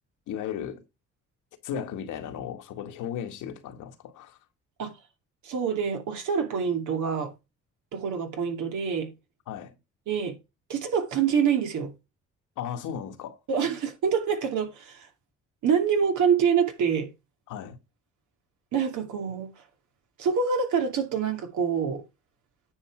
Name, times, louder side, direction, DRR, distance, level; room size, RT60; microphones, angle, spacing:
voice 1, 0.3-0.8 1.6-4.4 9.5-9.8 12.6-13.4 17.5-17.8, left 9 dB, 90° left, 1.9 m, -35 dB
voice 2, 5.4-7.3 7.9-9.1 10.1-10.4 10.7-11.9 13.5-15.1 15.6-17.1 18.7-19.5 20.2-22.0, right 6 dB, 75° right, 2.6 m, -26 dB
9.7 x 5.5 x 4.6 m
cardioid pair, 90°, 30 cm